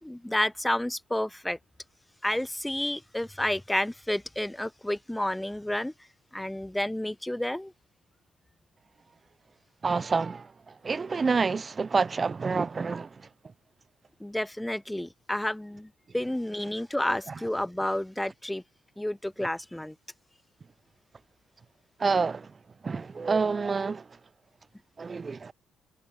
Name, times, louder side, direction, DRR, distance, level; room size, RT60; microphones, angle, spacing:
voice 1, 0.0-1.6 2.2-5.9 6.3-7.7 14.2-18.6 19.0-19.9, left 1 dB, 10° left, 0.9 m, -30 dB
voice 2, 9.8-13.2 22.0-22.5 22.8-24.1 25.0-25.5, right 4 dB, 35° right, 0.5 m, -28 dB
supercardioid pair, 60°, 0 cm